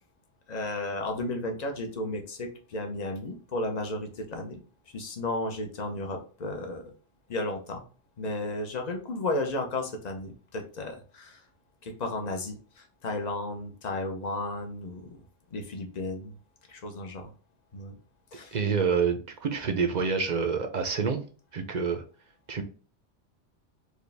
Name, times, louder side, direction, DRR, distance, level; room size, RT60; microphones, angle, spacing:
voice 1, 0.5-4.6 4.9-6.8 7.3-7.8 8.2-11.4 11.8-15.2 15.5-16.3 16.7-17.3 17.7-18.0 18.3-18.6, left 2 dB, 40° left, 3 dB, 0.8 m, -33 dB
voice 2, 18.5-21.2 21.5-22.0 22.5-22.6, right 6 dB, 50° right, 6 dB, 0.6 m, -27 dB
4.8 x 2.4 x 3.3 m, 0.37 s
omnidirectional pair, 1.2 m